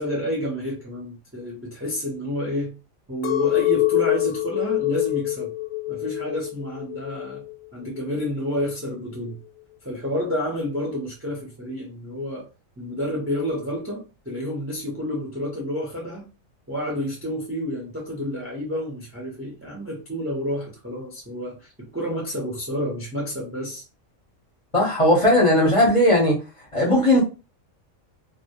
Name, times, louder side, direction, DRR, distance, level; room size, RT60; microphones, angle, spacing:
voice 1, 0.0-2.7 3.1-5.5 5.9-7.4 7.7-9.4 9.8-12.5 12.8-16.2 16.7-23.8, equal, 20° right, 0.4 m, -29 dB
Chink clink, 3.2-7.5 8.0-8.6, left 20 dB, 90° left, 1.0 m, -25 dB
voice 2, 24.7-26.3 26.7-27.2, left 1 dB, 30° left, 0.7 m, -17 dB
2.1 x 2.1 x 2.8 m
omnidirectional pair, 1.4 m